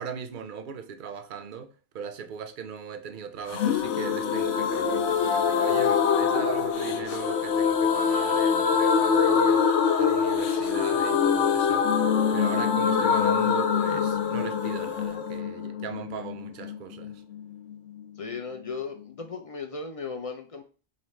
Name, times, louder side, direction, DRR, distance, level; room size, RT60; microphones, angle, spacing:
voice 1, 0.0-9.7 10.0-11.9 12.3-17.2, right 7 dB, 55° right, 0.6 m, -38 dB
sound 1, 3.5-17.1 17.4-17.5 17.7-17.8, left 6 dB, 80° left, 0.9 m, -24 dB
voice 2, 18.2-20.6, left 4 dB, 65° left, 0.3 m, -36 dB
4.9 x 2.7 x 3.1 m
omnidirectional pair, 1.2 m